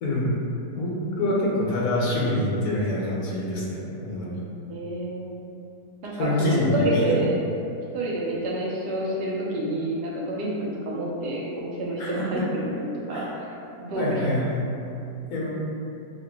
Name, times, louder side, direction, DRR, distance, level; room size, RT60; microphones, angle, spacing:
voice 1, 0.7-4.4 6.2-7.1 12.0-12.5 13.1-13.3 13.9-14.6 15.3-15.5, left 1 dB, 65° left, -4 dB, 1.3 m, -26 dB
voice 2, 4.7-5.5 6.0-7.4 7.9-13.5 13.8-14.1, right 1 dB, 85° right, -4 dB, 1.4 m, -28 dB
6.1 x 2.5 x 2.9 m, 2.7 s
omnidirectional pair, 1.7 m